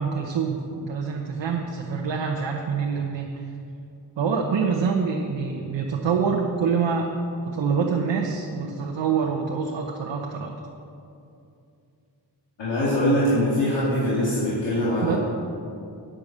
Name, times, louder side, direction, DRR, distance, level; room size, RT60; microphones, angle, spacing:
voice 1, 0.0-3.5 4.2-7.1 7.5-10.5 15.0-15.2, right 6 dB, 80° right, 1 dB, 0.9 m, -26 dB
voice 2, 12.6-15.2, equal, 80° left, -9 dB, 2.4 m, -22 dB
8.7 x 6.6 x 7.3 m, 2.6 s
cardioid pair, 60°, 44 cm